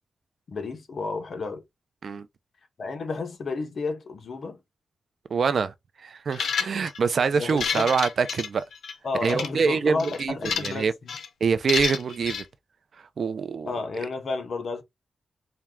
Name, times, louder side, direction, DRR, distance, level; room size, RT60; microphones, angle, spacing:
voice 1, 0.5-1.6 2.8-4.6 7.4-7.9 9.0-11.1 13.6-14.8, left 3 dB, 60° left, 1.1 m, -31 dB
voice 2, 5.3-8.6 9.2-10.9 11.4-12.5 13.2-13.7, right 5 dB, 60° right, 0.5 m, -25 dB
sound 1, 6.3-7.0 7.4-8.9 9.2-9.5 10.0-10.8 11.1-11.3 11.7-12.4, left 6 dB, 90° left, 0.6 m, -30 dB
4.3 x 2.3 x 3.5 m
wide cardioid pair, 130°, 0 cm